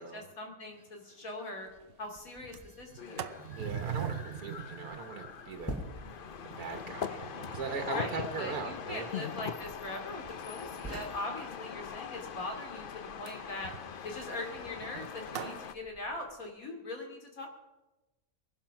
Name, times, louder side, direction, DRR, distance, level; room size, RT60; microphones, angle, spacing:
voice 1, 0.0-1.7 2.0-3.4 7.8-13.7 14.0-17.5, left 2 dB, 70° left, 2 dB, 3.1 m, -41 dB
Sliding door, 0.8-0.9 1.2-1.3 1.6-1.9 2.3-10.3 10.8-11.2 13.2-15.6, right 8 dB, 55° right, 0.7 m, -44 dB
sound 1, 1.6-16.5, equal, 10° left, 2.6 m, -51 dB
sound 2, 3.0-15.7, left 7 dB, 50° left, 0.7 m, -42 dB
voice 2, 3.6-5.8 6.6-9.1, right 5 dB, 85° right, 5 dB, 1.6 m, -39 dB
20.0 x 12.0 x 5.8 m, 1.1 s
omnidirectional pair, 1.5 m